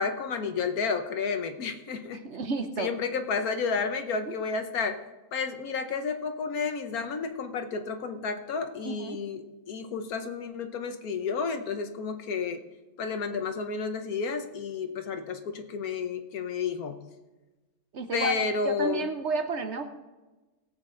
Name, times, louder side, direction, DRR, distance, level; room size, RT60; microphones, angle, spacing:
voice 1, 0.0-2.2 2.8-5.0 5.3-12.6 13.0-17.0 18.1-19.1, left 5 dB, 75° left, 7 dB, 1.4 m, -31 dB
voice 2, 2.1-2.9 4.3-4.4 8.8-9.2 17.9-18.4 18.6-19.9, right 3 dB, 55° right, 8 dB, 1.0 m, -31 dB
18.0 x 8.1 x 3.8 m, 1.2 s
omnidirectional pair, 1.6 m